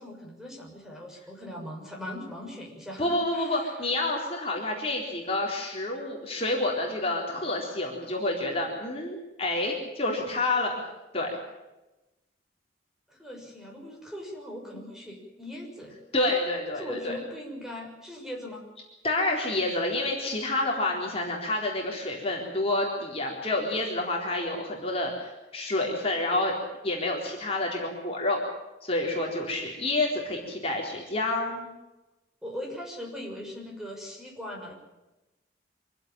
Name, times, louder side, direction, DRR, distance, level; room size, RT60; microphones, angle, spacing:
voice 1, 0.0-3.7 13.1-16.0 16.7-18.6 32.4-34.7, equal, 5° right, -1 dB, 6.5 m, -40 dB
voice 2, 3.0-10.8 11.1-11.4 16.1-17.2 19.0-26.6 26.8-28.4 28.8-31.7, left 2 dB, 35° left, -1 dB, 4.0 m, -28 dB
25.5 x 15.5 x 8.9 m, 1.0 s
head